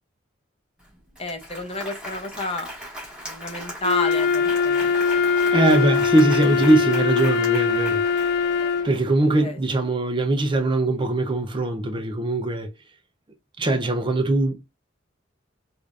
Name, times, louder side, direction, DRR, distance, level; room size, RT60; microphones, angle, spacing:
Applause, 0.8-0.9 1.2-8.7, equal, 5° right, 1.8 m, -38 dB
voice 1, 1.2-2.7 3.2-4.9 9.4-9.6, left 2 dB, 30° left, 0.9 m, -30 dB
Wind instrument woodwind instrument, 3.8-9.0, left 5 dB, 55° left, 0.3 m, -22 dB
sound 1, 4.4-9.9 10.5-10.6 10.9-11.0 11.3-11.4, right 2 dB, 45° right, 0.8 m, -42 dB
voice 2, 5.5-8.3 8.8-12.7 13.6-14.6, right 2 dB, 25° right, 0.5 m, -21 dB
4.8 x 2.5 x 2.4 m
head